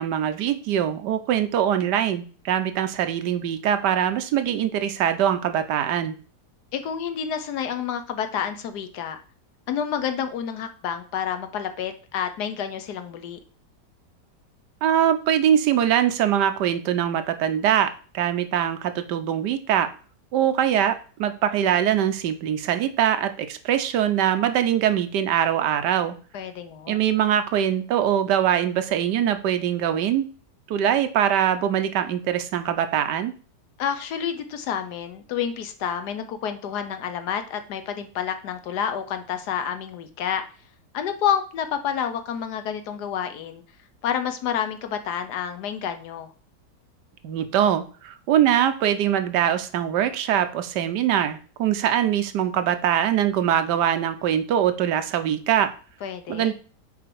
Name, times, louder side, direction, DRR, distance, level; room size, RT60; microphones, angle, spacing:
voice 1, 0.0-6.1 14.8-17.9 18.1-19.9 20.3-20.9 21.2-26.2 26.9-30.3 30.7-33.3 47.2-55.7 56.3-56.5, right 10 dB, 85° right, 9 dB, 1.3 m, -22 dB
voice 2, 6.7-9.2 9.7-13.4 26.3-27.0 33.8-40.4 40.9-43.6 44.0-46.3 56.0-56.5, left 8 dB, 75° left, 9 dB, 1.3 m, -29 dB
6.0 x 4.7 x 4.6 m, 0.39 s
omnidirectional pair, 1.8 m